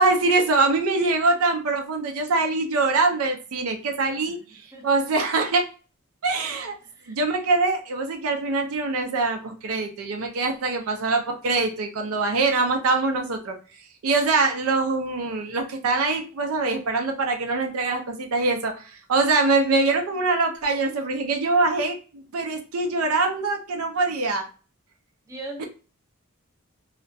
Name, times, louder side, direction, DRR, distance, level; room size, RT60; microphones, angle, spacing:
voice 1, 0.0-4.4 4.8-5.6 6.2-6.8 7.1-13.5 14.0-24.4, right 3 dB, 80° right, 3 dB, 0.5 m, -23 dB
voice 2, 6.8-7.2 10.6-11.0 25.3-25.7, right 2 dB, 15° right, 1 dB, 0.5 m, -40 dB
2.3 x 2.1 x 2.6 m, 0.36 s
head